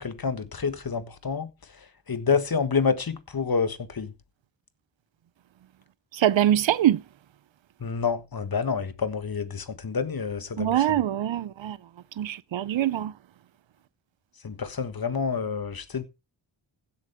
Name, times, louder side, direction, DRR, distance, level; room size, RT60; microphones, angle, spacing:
voice 1, 0.0-1.5 2.1-4.1 7.8-11.0 14.4-16.0, left 5 dB, 50° left, 1.5 m, -28 dB
voice 2, 6.1-7.0 10.6-11.8 12.2-13.1, right 12 dB, 75° right, 0.6 m, -23 dB
15.5 x 7.2 x 3.5 m
cardioid pair, 50°, 45 cm